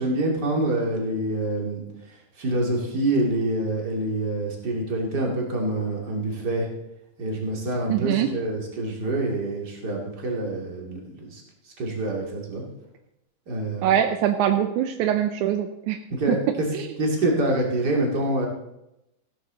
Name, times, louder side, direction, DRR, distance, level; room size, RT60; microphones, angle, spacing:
voice 1, 0.0-1.8 2.4-6.7 7.2-11.4 11.8-12.6 13.5-13.9 16.1-16.7 17.0-18.5, right 1 dB, 35° right, -1 dB, 2.8 m, -26 dB
voice 2, 7.9-8.3 13.8-16.0 16.3-16.9, right 10 dB, 80° right, 7 dB, 2.1 m, -23 dB
15.5 x 12.0 x 3.9 m, 0.87 s
omnidirectional pair, 3.5 m